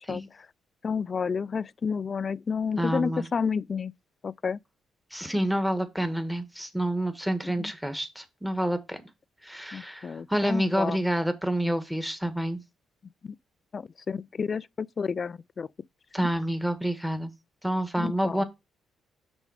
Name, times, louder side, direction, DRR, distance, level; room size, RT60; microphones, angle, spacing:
voice 1, 0.1-0.5 0.8-3.9 4.2-4.6 7.4-7.7 9.7-11.0 13.2-13.4 13.7-15.7 16.2-16.3 18.0-18.4, left 5 dB, 40° left, 0.3 m, -31 dB
voice 2, 2.8-3.3 5.1-9.0 9.4-12.6 16.1-17.3 17.6-18.4, right 1 dB, ahead, 1.5 m, -28 dB
6.7 x 5.2 x 4.9 m
cardioid pair, 90°, 0 cm